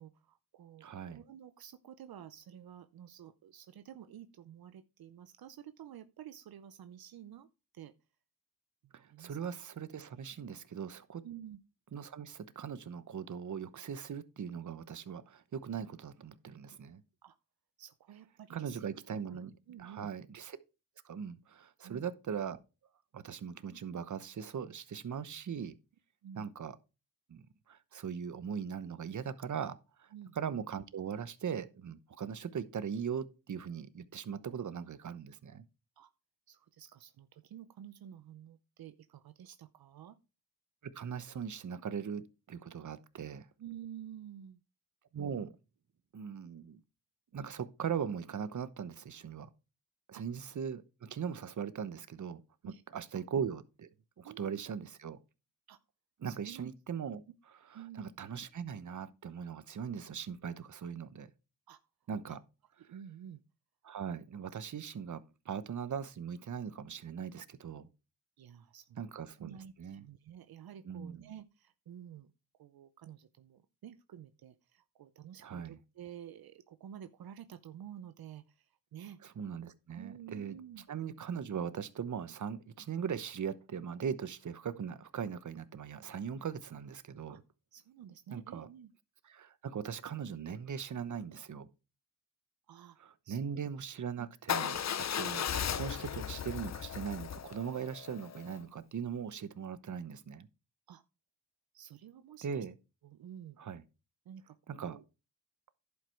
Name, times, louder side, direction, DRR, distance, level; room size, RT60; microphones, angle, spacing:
voice 1, 0.0-7.5 7.7-7.9 8.8-9.7 10.4-10.6 11.2-11.6 17.2-17.4 17.8-18.9 19.3-19.4 19.7-20.1 21.8-22.1 26.2-26.5 30.1-30.4 36.0-36.1 36.5-40.2 43.6-44.6 50.1-50.2 52.6-52.8 53.1-53.2 54.2-54.7 55.7-55.8 56.2-56.7 57.7-58.0 61.7-61.8 62.3-62.4 62.8-63.4 68.4-69.1 69.4-72.3 72.6-79.2 79.9-80.8 87.3-87.4 87.7-88.9 92.7-93.0 93.2-93.6 94.2-94.3 94.7-94.8 100.9-101.0 101.7-102.6 103.0-103.6 104.2-105.0, right 10 dB, 80° right, 0.7 m, -51 dB
voice 2, 0.8-1.2 8.9-11.2 11.9-17.0 18.5-20.6 21.0-22.6 23.1-25.8 26.4-26.8 27.3-35.6 40.8-43.5 45.1-45.5 46.1-46.8 47.3-49.5 50.1-52.4 52.9-53.9 54.2-55.2 56.2-57.2 58.0-61.3 62.1-62.4 63.8-67.9 69.0-70.0 70.8-71.3 75.4-75.8 79.4-80.6 80.9-87.4 88.3-88.7 89.3-91.7 93.0-100.5 102.4-102.7 103.6-103.8 104.7-105.0, right 7 dB, 55° right, 1.0 m, -40 dB
Motorcycle / Engine starting / Idling, 94.5-98.6, left 9 dB, 50° left, 0.6 m, -36 dB
11.0 x 5.3 x 4.5 m
cardioid pair, 70°, 36 cm